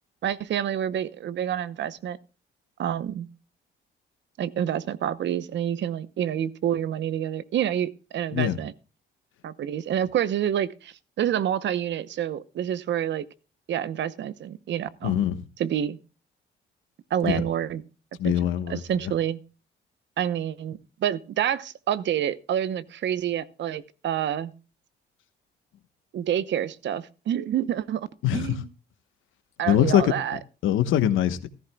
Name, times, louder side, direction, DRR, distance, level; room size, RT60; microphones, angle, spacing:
voice 1, 0.2-2.2 2.8-3.3 4.4-8.7 9.4-13.3 13.7-15.2 15.6-16.0 17.1-17.8 18.2-18.4 18.7-19.4 20.2-24.5 26.1-28.1 28.3-28.7 29.6-30.4, right 10 dB, 65° right, 0.8 m, -28 dB
voice 2, 15.0-15.4 17.2-17.4 18.2-18.8 28.2-28.6 29.7-30.1 30.6-31.5, left 11 dB, 90° left, 1.1 m, -22 dB
15.0 x 13.5 x 2.3 m
cardioid pair, 90°, 20 cm